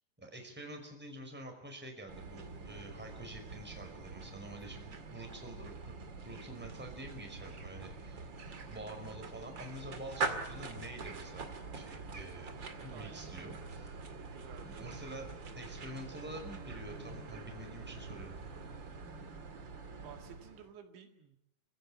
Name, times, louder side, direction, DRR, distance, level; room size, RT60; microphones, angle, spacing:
voice 1, 0.2-6.0 6.2-8.2 8.7-12.5 12.8-13.9 14.6-18.3, right 1 dB, ahead, 3 dB, 4.5 m, -47 dB
sound 1, 2.1-20.7, right 4 dB, 40° right, 1.8 m, -44 dB
voice 2, 7.4-7.7 12.9-13.2 14.2-15.0 20.0-21.4, right 8 dB, 80° right, 5 dB, 4.3 m, -54 dB
28.0 x 16.5 x 8.6 m, 0.75 s
omnidirectional pair, 5.2 m